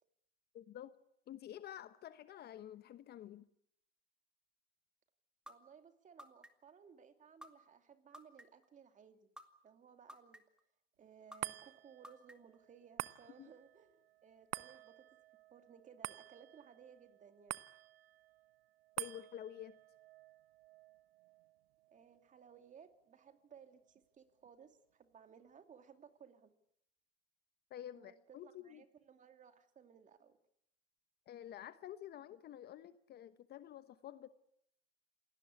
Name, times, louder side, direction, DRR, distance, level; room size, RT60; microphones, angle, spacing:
voice 1, 0.5-0.9 1.3-3.4 13.4-13.5 19.0-19.8 27.7-28.8 31.3-34.3, left 11 dB, 30° left, 13 dB, 1.1 m, -50 dB
sound 1, 5.5-5.6 6.2-6.7 7.4-7.5 8.1-8.7 9.4-9.5 10.1-10.6 11.3-11.4 12.0-12.6, equal, 5° right, 2.1 m, -52 dB
voice 2, 5.5-9.3 9.6-10.4 11.0-15.1 15.5-17.6 21.9-26.5 27.9-30.4, right 7 dB, 25° right, 8 dB, 2.7 m, -60 dB
sound 2, 11.4-24.0 24.4-24.5, right 17 dB, 70° right, 1.0 m, -50 dB
27.5 x 18.5 x 8.4 m, 0.77 s
hypercardioid pair, 115°, 31 cm